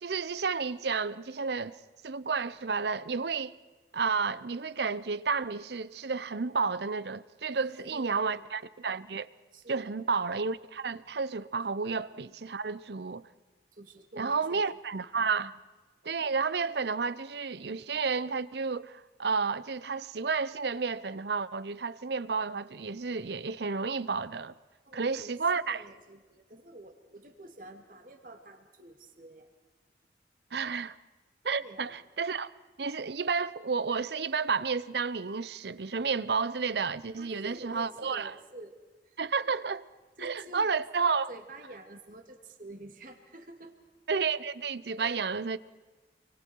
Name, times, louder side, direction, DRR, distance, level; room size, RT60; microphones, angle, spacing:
voice 1, 0.0-1.8 2.0-3.6 3.9-9.3 9.7-13.2 14.2-15.5 16.0-24.5 24.9-25.9 30.5-31.0 31.4-32.5 32.8-38.3 39.2-39.8 40.2-41.3 44.1-45.6, right 5 dB, 65° right, 0.7 m, -31 dB
voice 2, 7.5-8.5 9.5-9.9 13.7-14.6 15.4-15.5 24.8-29.5 31.6-32.0 37.2-38.8 39.0-39.2 40.2-40.7 41.3-43.8 45.0-45.2, right 1 dB, 50° right, 2.7 m, -48 dB
29.5 x 23.5 x 4.7 m
head